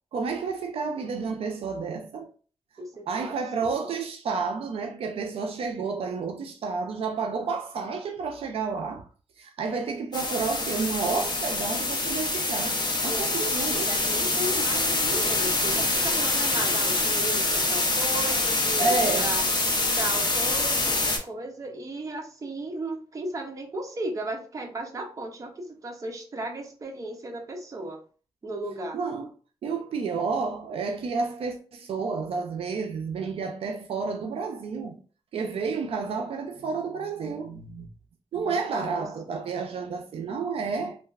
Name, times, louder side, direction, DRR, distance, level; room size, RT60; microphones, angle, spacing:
voice 1, 0.1-2.3 3.1-9.1 9.4-13.9 18.8-19.4 28.9-29.3 29.6-35.0 35.3-37.9 38.3-41.0, right 4 dB, 80° right, 0.4 m, -30 dB
voice 2, 2.8-3.8 13.0-19.5 20.0-28.0 28.4-29.0 38.4-39.0, right 2 dB, 35° right, 0.6 m, -35 dB
sound 1, 10.1-21.2, left 2 dB, 45° left, 0.7 m, -25 dB
3.1 x 2.3 x 2.3 m
wide cardioid pair, 115°, 10 cm